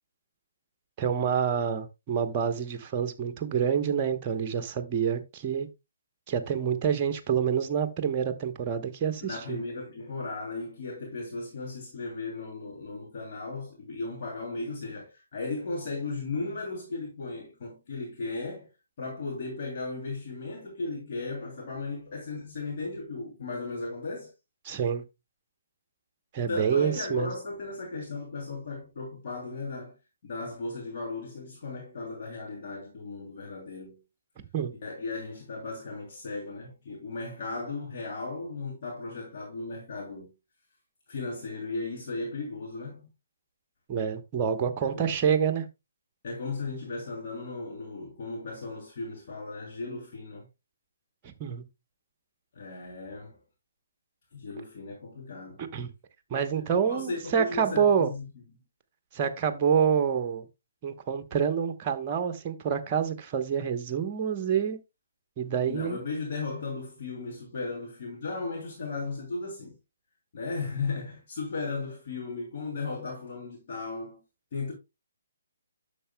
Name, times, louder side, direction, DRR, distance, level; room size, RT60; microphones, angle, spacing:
voice 1, 1.0-5.7 6.3-9.6 24.6-25.0 26.3-27.3 34.5-34.7 43.9-45.7 51.4-51.6 55.6-55.9 56.3-58.1 59.1-60.4 60.8-64.8 65.4-66.0, right 7 dB, 30° right, 0.9 m, -27 dB
voice 2, 9.2-18.7 19.0-24.3 26.5-29.9 30.2-34.0 34.8-40.3 41.1-43.1 44.9-45.1 46.2-50.5 52.5-53.4 54.3-55.6 56.5-58.2 65.7-69.7 70.3-74.2 74.5-74.7, left 3 dB, 45° left, 2.7 m, -36 dB
9.9 x 6.8 x 2.2 m
figure-of-eight pair, 140°, 0 cm